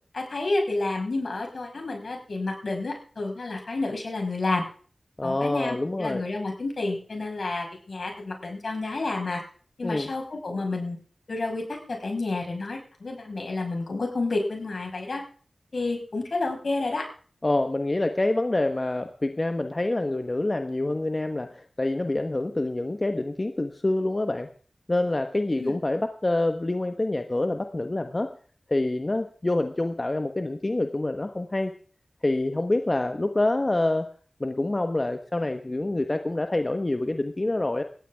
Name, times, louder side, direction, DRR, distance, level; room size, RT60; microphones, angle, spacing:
voice 1, 0.1-4.6 5.2-9.4 9.8-11.0 11.3-15.2 15.7-17.1 25.6-25.8, left 2 dB, 70° left, 2 dB, 5.7 m, -30 dB
voice 2, 5.2-6.2 9.8-10.1 17.4-24.5 24.9-28.3 28.7-31.7 32.2-34.1 34.4-37.8, left 2 dB, 40° left, 6 dB, 1.3 m, -26 dB
18.5 x 14.5 x 3.6 m, 0.42 s
cardioid pair, 45°, 0 cm